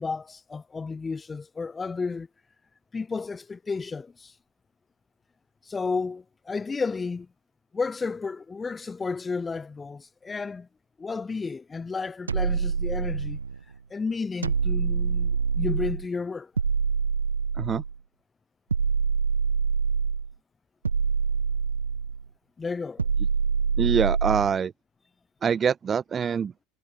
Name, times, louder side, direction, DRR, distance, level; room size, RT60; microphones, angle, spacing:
voice 1, 0.0-2.3 2.9-4.3 5.6-7.3 7.7-10.7 11.0-13.4 13.9-16.5 22.6-23.0, left 4 dB, 20° left, 5.6 m, -32 dB
sound 1, 12.3-13.6 14.4-16.1 16.6-18.0 18.7-20.3 20.8-22.2 23.0-24.6, right 5 dB, 85° right, 0.8 m, -25 dB
voice 2, 23.8-24.7 25.4-26.5, right 7 dB, 30° right, 1.3 m, -24 dB
figure-of-eight pair, 75°, 0 cm